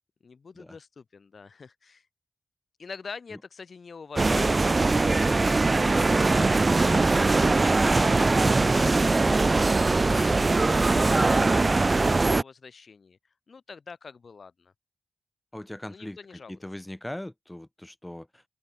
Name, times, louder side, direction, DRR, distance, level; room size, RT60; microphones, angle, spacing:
voice 1, 0.2-2.1 2.8-9.7 10.0-13.2 13.5-14.7 15.9-16.6, left 5 dB, 65° left, 3.2 m, -45 dB
sound 1, 4.2-12.4, right 3 dB, 40° right, 0.4 m, -21 dB
sound 2, 7.1-7.7 8.1-8.6 9.5-9.6 10.2-10.3 10.8-11.4, right 5 dB, 70° right, 1.4 m, -46 dB
voice 2, 15.5-18.4, left 1 dB, 10° left, 1.1 m, -40 dB
open air
cardioid pair, 60°, 0 cm